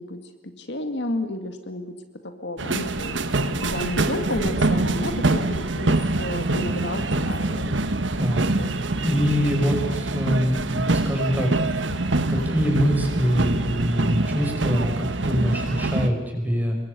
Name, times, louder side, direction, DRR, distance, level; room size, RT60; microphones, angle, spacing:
voice 1, 0.0-1.9 2.2-7.8 8.4-8.7, left 1 dB, 65° left, 7 dB, 2.2 m, -32 dB
sound 1, 2.6-16.1, right 2 dB, 80° right, 1.4 m, -25 dB
voice 2, 8.2-16.8, equal, 10° right, 2 dB, 5.7 m, -25 dB
27.0 x 22.5 x 6.9 m, 1.1 s
head